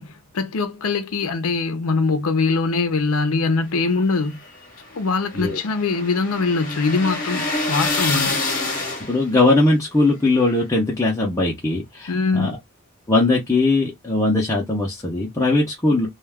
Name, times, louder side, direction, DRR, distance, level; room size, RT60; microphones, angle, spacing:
voice 1, 0.0-4.4 4.9-8.4 12.1-12.5, left 4 dB, 75° left, 0.6 m, -22 dB
sound 1, 3.9-9.4, left 3 dB, 40° left, 0.9 m, -27 dB
voice 2, 9.1-12.6 13.1-16.1, left 2 dB, 15° left, 0.5 m, -20 dB
2.3 x 2.2 x 3.3 m
head